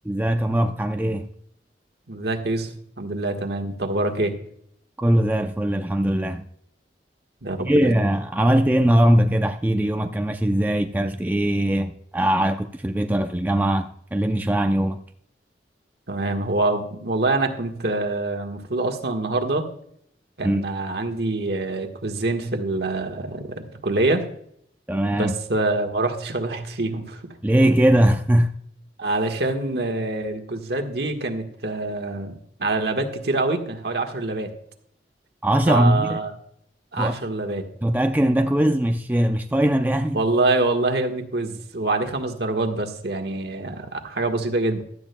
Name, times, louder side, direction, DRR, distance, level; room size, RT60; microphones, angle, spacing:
voice 1, 0.0-1.3 5.0-6.4 7.6-15.0 20.4-20.6 24.9-25.3 27.4-28.5 35.4-36.2 37.0-37.2 37.8-40.2, right 1 dB, 10° right, 0.4 m, -21 dB
voice 2, 2.1-4.3 7.4-8.0 16.1-19.7 20.4-24.2 25.1-27.2 29.0-34.5 35.7-36.3 36.9-37.7 40.1-44.8, right 2 dB, 65° right, 1.4 m, -25 dB
16.0 x 12.0 x 2.2 m
head